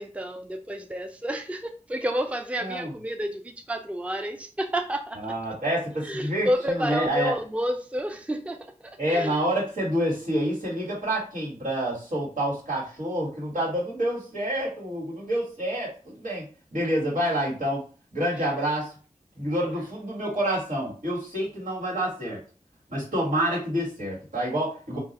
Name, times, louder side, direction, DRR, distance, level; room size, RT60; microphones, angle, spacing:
voice 1, 0.0-5.2 6.0-9.4 18.4-18.5, equal, 10° right, 0.4 m, -30 dB
voice 2, 2.6-2.9 5.2-7.3 9.0-16.5 16.7-17.8 18.1-18.9 19.4-22.4 22.9-25.0, right 1 dB, 80° right, 1.6 m, -28 dB
2.4 x 2.3 x 3.9 m
wide cardioid pair, 50°, 13 cm